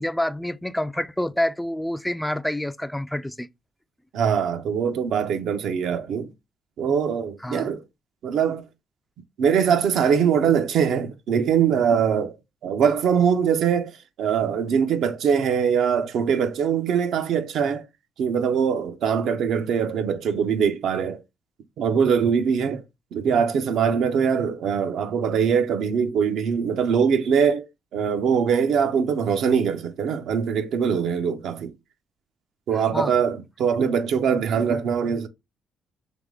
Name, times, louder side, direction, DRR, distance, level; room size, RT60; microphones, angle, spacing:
voice 1, 0.0-3.5 7.4-7.7 32.9-33.1, left 1 dB, 5° left, 0.3 m, -27 dB
voice 2, 4.1-6.3 6.8-7.8 8.2-8.6 9.4-12.4 12.6-17.9 18.2-21.2 21.8-22.8 23.1-27.7 27.9-31.7 32.7-35.3, right 7 dB, 75° right, 0.6 m, -22 dB
3.5 x 3.1 x 3.6 m
cardioid pair, 90°, 0 cm